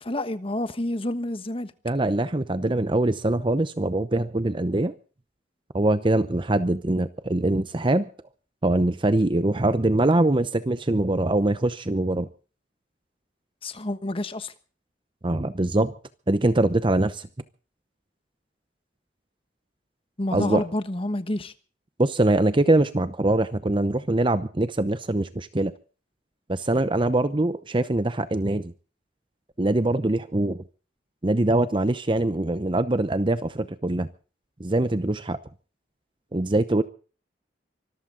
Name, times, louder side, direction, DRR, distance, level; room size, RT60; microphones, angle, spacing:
voice 1, 0.0-1.7 13.6-14.5 20.2-21.5, left 1 dB, 30° left, 1.3 m, -28 dB
voice 2, 1.8-4.9 5.7-8.1 8.6-12.3 15.2-15.9 16.3-17.3 20.3-20.6 22.0-25.7 26.5-28.7 29.6-30.6 31.2-34.1 34.6-35.4 36.3-36.8, right 2 dB, 25° right, 0.8 m, -23 dB
25.0 x 13.5 x 3.9 m
head